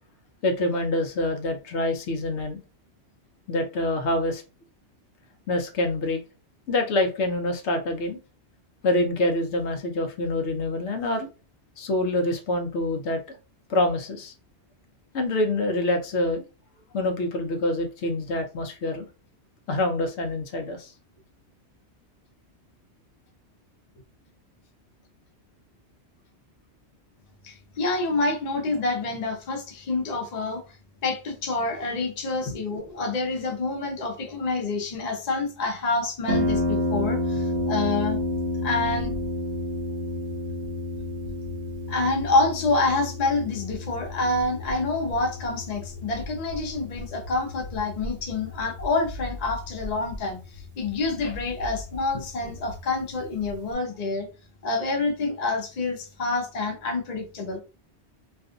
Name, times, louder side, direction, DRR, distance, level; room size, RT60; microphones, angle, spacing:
voice 1, 0.4-2.6 3.5-4.4 5.5-6.2 6.7-8.2 8.8-11.3 11.8-13.2 13.7-14.3 15.1-16.4 16.9-19.1 19.7-20.9 32.5-32.6, left 1 dB, 80° left, 0.9 m, -26 dB
voice 2, 27.4-30.6 31.0-38.2 38.6-39.1 41.9-54.3 54.6-57.6, left 3 dB, 45° left, 0.7 m, -27 dB
Harp, 36.3-53.7, left 1 dB, 70° right, 0.9 m, -31 dB
2.5 x 2.3 x 2.5 m
omnidirectional pair, 1.1 m